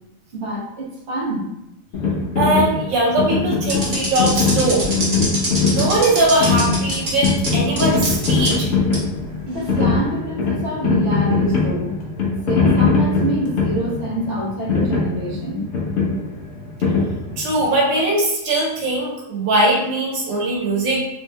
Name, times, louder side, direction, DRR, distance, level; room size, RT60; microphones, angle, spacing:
voice 1, 0.3-1.5 7.1-7.3 9.5-11.9 12.5-15.7, right 1 dB, 60° right, -4 dB, 1.3 m, -26 dB
sound 1, 1.9-17.7, left 4 dB, 65° left, 1.0 m, -21 dB
voice 2, 2.4-4.8 5.7-8.7 17.4-21.1, right 2 dB, 90° right, -3 dB, 1.1 m, -20 dB
sound 2, 3.7-7.5 7.8-8.5 8.9-9.0 9.7-9.9, right 2 dB, 40° right, 1.1 m, -24 dB
3.4 x 3.0 x 2.2 m, 0.86 s
omnidirectional pair, 1.4 m